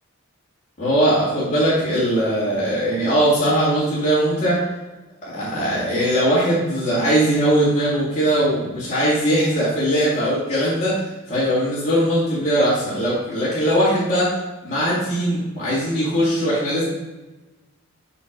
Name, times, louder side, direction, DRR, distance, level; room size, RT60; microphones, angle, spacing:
voice 1, 0.8-4.6 5.3-14.3 14.6-16.8, right 1 dB, 30° left, -10 dB, 2.1 m, -20 dB
6.1 x 3.9 x 6.0 m, 1.1 s
head